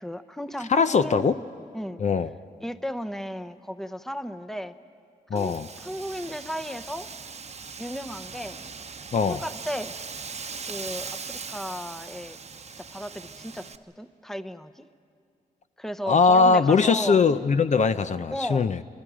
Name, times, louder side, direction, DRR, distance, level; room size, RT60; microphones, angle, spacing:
voice 1, 0.0-1.4 1.7-2.0 2.6-4.7 5.3-7.1 7.8-8.6 9.3-10.0 10.7-12.4 12.8-14.9 15.8-17.2 18.3-18.7, equal, ahead, 10 dB, 0.8 m, -35 dB
voice 2, 0.7-1.3 2.0-2.3 5.3-5.7 9.1-9.4 16.1-18.8, left 5 dB, 50° left, 11 dB, 0.6 m, -21 dB
Wind, 5.4-13.8, right 5 dB, 45° right, 0.9 m, -40 dB
27.5 x 22.0 x 5.0 m, 2.3 s
cardioid pair, 65°, 16 cm